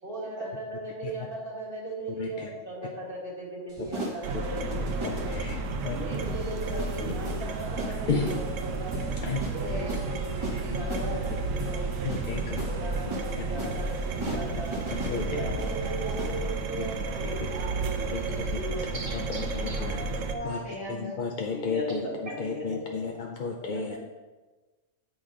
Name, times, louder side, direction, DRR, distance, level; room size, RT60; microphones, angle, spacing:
voice 1, 0.0-5.4 5.9-9.0 9.5-12.2 12.7-14.8 15.1-19.4 19.7-19.8, right 2 dB, 40° right, -3 dB, 2.0 m, -37 dB
voice 2, 2.2-2.5 5.0-5.6 5.8-6.0 8.1-8.4 9.2-9.4 12.0-12.7 14.9-15.3 16.8-16.9 17.2-17.3 18.1-18.2 19.1-20.0 20.4-20.6 20.9-22.0 22.4-24.0, left 5 dB, 55° left, 1 dB, 0.5 m, -32 dB
sound 1, 3.7-16.4, right 1 dB, 25° right, 1.2 m, -39 dB
sound 2, 4.2-20.4, right 3 dB, 75° right, 1.0 m, -32 dB
voice 3, 6.6-7.0 8.9-9.1 9.6-10.0 10.8-11.2 11.9-12.0 15.3-15.6 18.3-18.4 19.7-21.2 21.5-23.1 23.6-24.0, left 1 dB, 85° left, -5 dB, 2.4 m, -38 dB
8.1 x 6.1 x 3.8 m, 1.2 s
omnidirectional pair, 1.4 m